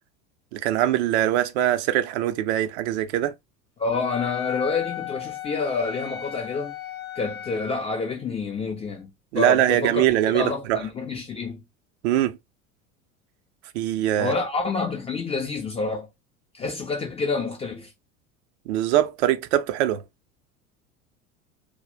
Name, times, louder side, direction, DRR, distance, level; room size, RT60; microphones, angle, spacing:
voice 1, 0.5-3.3 9.3-10.8 12.0-12.4 13.7-14.3 18.7-20.0, right 12 dB, 55° right, 0.5 m, -22 dB
voice 2, 3.8-6.8 7.2-10.0 10.3-11.6 14.2-16.1 16.5-17.9, left 4 dB, 15° left, 0.4 m, -28 dB
Wind instrument woodwind instrument, 3.9-7.8, left 11 dB, 65° left, 0.7 m, -35 dB
2.3 x 2.0 x 3.3 m
figure-of-eight pair, 75°, 42 cm